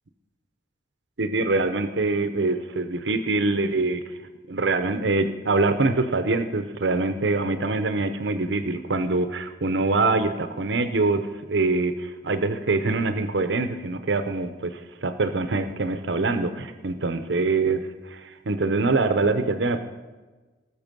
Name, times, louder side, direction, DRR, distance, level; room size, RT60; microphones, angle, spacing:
voice 1, 1.2-4.0 4.5-19.8, right 3 dB, 75° right, 9 dB, 0.8 m, -24 dB
19.0 x 6.7 x 5.3 m, 1.2 s
head